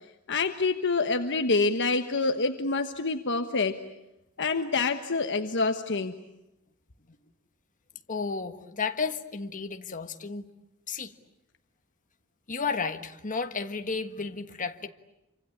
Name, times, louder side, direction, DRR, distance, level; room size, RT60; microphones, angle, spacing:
voice 1, 0.3-3.8 4.4-6.1, left 3 dB, 55° left, 1.3 m, -26 dB
voice 2, 8.1-10.4 10.9-11.1 12.5-14.9, left 5 dB, 40° left, 1.5 m, -32 dB
27.0 x 25.5 x 8.6 m
head